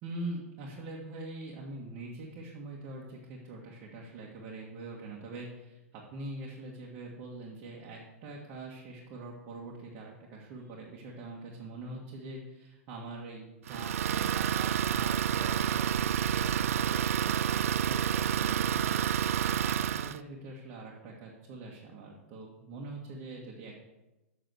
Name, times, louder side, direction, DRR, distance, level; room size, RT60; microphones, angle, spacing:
voice 1, 0.0-23.8, right 2 dB, 40° right, -3 dB, 1.8 m, -43 dB
Idling, 13.7-20.2, right 9 dB, 70° right, 0.4 m, -29 dB
7.8 x 6.2 x 6.4 m, 1.0 s
hypercardioid pair, 110°, 8 cm